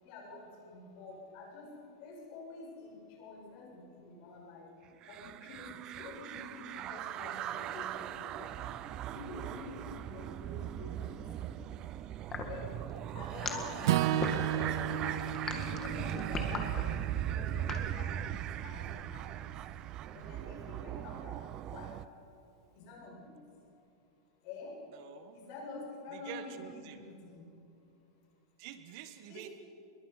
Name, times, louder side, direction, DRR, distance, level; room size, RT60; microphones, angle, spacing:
voice 1, 0.0-1.7 2.0-4.7 5.1-8.7 9.1-11.5 12.4-12.8 13.1-14.0 14.5-19.5 20.1-21.9 22.7-23.3 24.4-24.8 25.3-27.4 29.3-29.5, left 3 dB, 45° left, -1 dB, 7.5 m, -47 dB
sound 1, 5.0-22.0, right 12 dB, 30° right, 0.5 m, -39 dB
sound 2, 12.3-17.9, left 5 dB, 20° left, 2.0 m, -39 dB
Acoustic guitar / Strum, 13.8-18.1, right 12 dB, 65° right, 0.9 m, -34 dB
voice 2, 24.9-25.4 26.1-27.0 28.6-29.5, right 10 dB, 50° right, 9 dB, 1.4 m, -47 dB
27.0 x 22.5 x 5.8 m, 2.6 s
supercardioid pair, 160°, 2 cm